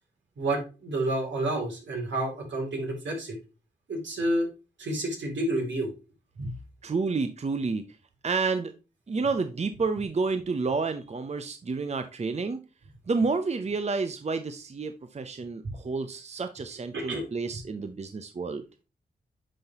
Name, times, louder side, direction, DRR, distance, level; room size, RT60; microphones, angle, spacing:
voice 1, 0.4-3.4 3.9-4.5 4.8-5.9 6.4-6.5 15.6-15.7 16.9-17.2, right 1 dB, 75° right, -1 dB, 2.7 m, -29 dB
voice 2, 6.8-7.8 8.2-8.7 9.1-12.6 13.1-18.6, right 4 dB, 35° right, 9 dB, 0.6 m, -30 dB
9.9 x 3.9 x 2.8 m, 0.31 s
cardioid pair, 45°, 19 cm